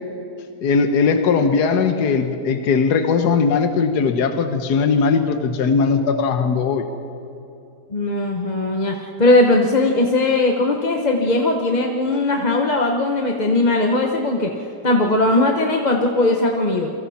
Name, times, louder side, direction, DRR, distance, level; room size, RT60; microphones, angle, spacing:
voice 1, 0.6-6.8, left 5 dB, 75° left, 7 dB, 1.6 m, -19 dB
voice 2, 7.9-14.5 14.8-16.9, left 2 dB, 30° left, 2 dB, 1.1 m, -19 dB
28.5 x 23.5 x 4.3 m, 2.8 s
omnidirectional pair, 1.8 m